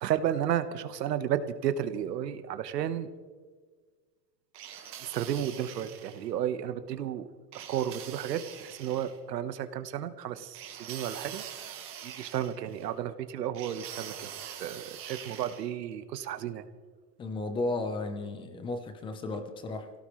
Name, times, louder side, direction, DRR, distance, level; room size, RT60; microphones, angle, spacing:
voice 1, 0.0-3.1 5.0-7.3 7.5-11.4 12.0-14.3 14.6-16.7, right 10 dB, 90° right, 11 dB, 1.4 m, -33 dB
sound 1, 4.5-6.3 7.5-9.2 10.5-12.9 13.5-15.7, right 9 dB, 25° right, 1.7 m, -44 dB
voice 2, 17.2-19.9, left 2 dB, 10° left, 8 dB, 0.8 m, -34 dB
25.0 x 17.5 x 3.2 m, 1.5 s
supercardioid pair, 165°, 47 cm